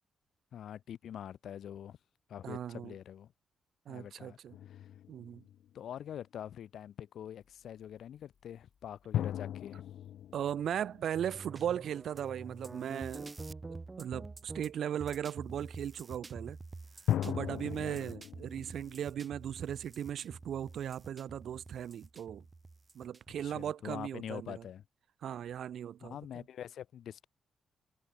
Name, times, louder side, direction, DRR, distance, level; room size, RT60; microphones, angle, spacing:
voice 1, 0.5-2.0 2.3-3.3 3.9-4.4 4.7-4.9 5.7-9.8 17.4-18.1 23.4-24.8 26.0-27.3, left 10 dB, 70° left, 1.4 m, -45 dB
voice 2, 2.4-2.9 3.9-4.5 5.1-5.4 10.3-13.3 13.7-16.6 17.2-22.4 22.9-24.6 25.2-26.2, right 9 dB, 70° right, 0.6 m, -37 dB
sound 1, 4.5-6.2 9.1-11.8 17.1-20.1, left 11 dB, 90° left, 0.5 m, -38 dB
sound 2, 7.4-12.9, left 7 dB, 50° left, 5.2 m, -71 dB
sound 3, 11.1-23.7, right 3 dB, 20° right, 1.7 m, -47 dB
wide cardioid pair, 150°, 0 cm